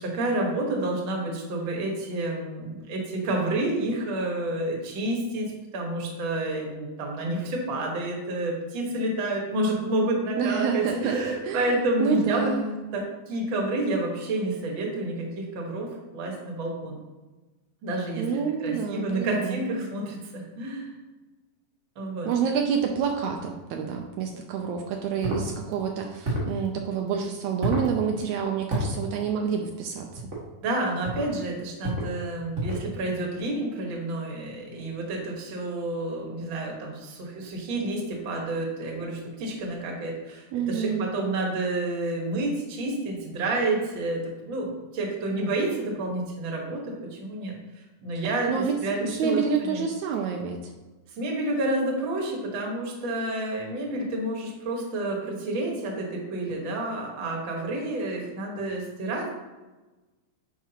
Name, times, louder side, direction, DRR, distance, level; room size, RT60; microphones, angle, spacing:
voice 1, 0.0-12.5 12.9-17.0 17.8-20.9 22.0-22.3 30.6-47.6 48.0-49.8 51.2-59.3, right 2 dB, 50° right, -1 dB, 1.9 m, -29 dB
voice 2, 10.4-11.7 12.0-12.7 18.2-19.7 22.3-30.3 40.5-41.1 48.2-48.7 49.0-50.7, right 6 dB, 80° right, 2 dB, 1.9 m, -28 dB
sound 1, 25.2-25.5 26.2-26.6 27.6-27.9 28.7-28.9 30.2-30.4 31.0-31.3 31.8-32.1 32.5-32.9, equal, 30° right, 1.5 m, -29 dB
9.4 x 5.9 x 2.9 m, 1.2 s
omnidirectional pair, 3.4 m